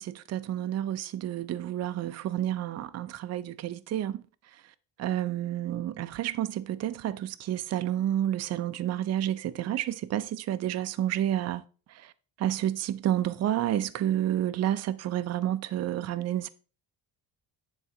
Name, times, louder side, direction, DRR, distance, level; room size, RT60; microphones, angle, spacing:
voice 1, 0.0-4.2 5.0-11.6 11.9-12.1 12.4-16.5, right 12 dB, 40° right, 0.4 m, -30 dB
10.0 x 3.8 x 4.3 m
cardioid pair, 165°, 43 cm